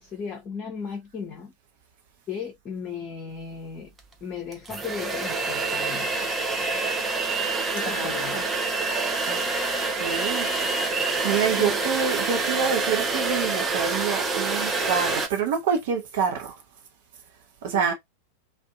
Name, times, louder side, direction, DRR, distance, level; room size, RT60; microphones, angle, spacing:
voice 1, 0.0-1.5 2.3-3.9 4.2-6.1 7.7-8.5 11.6-11.8 17.7-17.9, left 6 dB, 30° left, 0.7 m, -36 dB
sound 1, 4.0-4.1 4.5-15.3, right 3 dB, 15° right, 0.5 m, -26 dB
voice 2, 7.8-8.4 9.3-9.4 9.9-10.5 10.9-16.6 17.6-17.9, right 7 dB, 55° right, 0.7 m, -27 dB
2.6 x 2.2 x 2.5 m
figure-of-eight pair, 90°, 0 cm